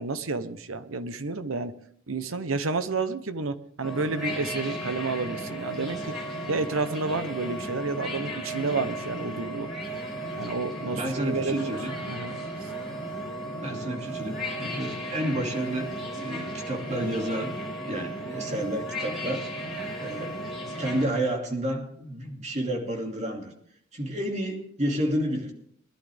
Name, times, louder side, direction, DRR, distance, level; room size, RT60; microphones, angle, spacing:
voice 1, 0.0-1.7 2.1-6.1 6.5-9.7 10.4-11.8 12.1-12.7, right 3 dB, 80° right, 11 dB, 1.0 m, -30 dB
sound 1, 3.8-21.1, right 1 dB, ahead, 4.8 m, -35 dB
voice 2, 10.9-12.0 13.6-15.9 16.1-19.4 20.0-20.4 20.8-23.5 23.9-25.5, right 1 dB, 35° right, 1 dB, 2.6 m, -30 dB
21.0 x 11.5 x 3.5 m, 0.66 s
head